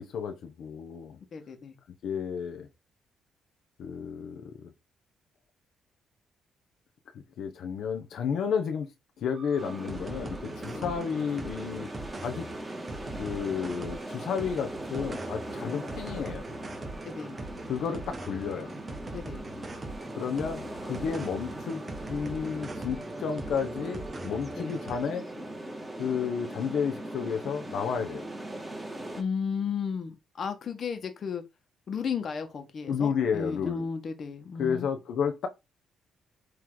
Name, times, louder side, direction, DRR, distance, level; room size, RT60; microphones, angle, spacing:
voice 1, 0.0-1.2 2.0-2.7 3.8-4.7 7.4-8.9 9.2-11.9 12.2-12.4 13.2-16.5 17.7-18.7 20.2-21.8 22.1-25.2 26.0-28.2 32.9-33.8 34.6-35.5, left 7 dB, 70° left, 1.1 m, -32 dB
voice 2, 1.3-1.7 10.7-11.0 15.6-15.9 17.0-17.3 19.1-19.4 24.6-24.7 29.2-31.4 31.9-34.8, left 6 dB, 50° left, 1.6 m, -34 dB
sound 1, 9.3-25.0, right 2 dB, 30° right, 1.5 m, -42 dB
sound 2, 9.6-29.2, right 1 dB, 10° right, 2.4 m, -40 dB
7.8 x 3.3 x 4.0 m
cardioid pair, 90°, 0 cm